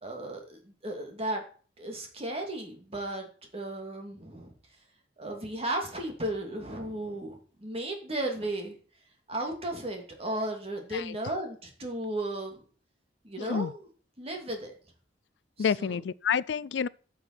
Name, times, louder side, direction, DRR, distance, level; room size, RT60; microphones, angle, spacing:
voice 1, 0.0-1.4 1.8-4.5 5.2-8.8 9.3-12.6 13.2-13.8 14.2-14.7 15.8-16.0, right 1 dB, 35° right, 2.6 m, -35 dB
voice 2, 13.4-13.7 15.6-16.9, left 7 dB, 80° left, 0.4 m, -29 dB
12.0 x 7.0 x 4.4 m
head